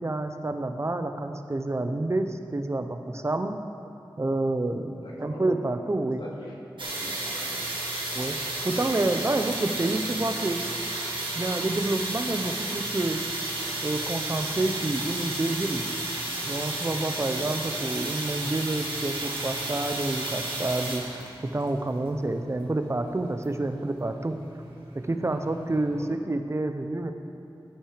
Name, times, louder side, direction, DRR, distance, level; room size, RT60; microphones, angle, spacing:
voice 1, 0.0-3.5 4.2-6.3 7.0-7.1 8.1-8.4 8.6-10.6 11.3-13.2 13.8-15.8 16.5-21.2 21.5-24.4 25.1-27.1, right 2 dB, 35° right, 7 dB, 0.7 m, -28 dB
voice 2, 5.0-5.5 6.2-7.7 17.2-17.4 25.9-26.1, left 1 dB, 85° left, -4 dB, 2.3 m, -44 dB
sound 1, 6.8-26.0, right 2 dB, 80° right, 1.9 m, -33 dB
16.0 x 6.2 x 5.0 m, 3.0 s
wide cardioid pair, 85°, 8 cm